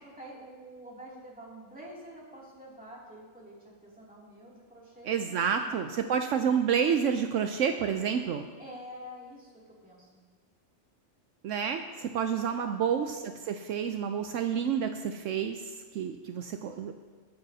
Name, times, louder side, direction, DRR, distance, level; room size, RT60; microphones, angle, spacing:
voice 1, 0.0-5.1 5.5-6.0 8.6-10.2 12.2-13.0, equal, 5° right, -5 dB, 2.7 m, -48 dB
voice 2, 5.1-8.5 11.4-16.9, right 7 dB, 75° right, 6 dB, 0.9 m, -29 dB
20.5 x 9.4 x 2.8 m, 1.5 s
omnidirectional pair, 1.3 m